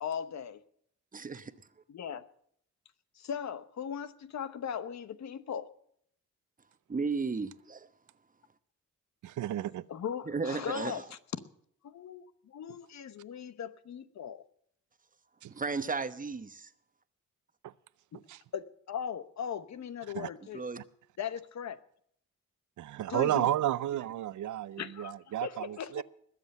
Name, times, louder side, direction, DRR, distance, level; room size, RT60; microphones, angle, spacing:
voice 1, 0.0-0.6 1.9-2.2 3.2-5.7 9.9-11.2 11.8-14.4 18.1-18.2 18.5-20.6 21.2-21.8 23.1-23.5 24.8-25.1 25.4-26.0, left 8 dB, 60° left, 1.0 m, -38 dB
voice 2, 1.1-1.5 6.9-7.9 10.3-11.0 15.5-16.7 20.5-20.8, right 4 dB, 25° right, 1.0 m, -34 dB
voice 3, 9.2-9.9 15.4-15.5 17.6-17.7 18.3-18.4 20.1-20.3 22.8-26.0, right 12 dB, 75° right, 0.6 m, -32 dB
20.5 x 7.8 x 6.6 m
cardioid pair, 105°, 31 cm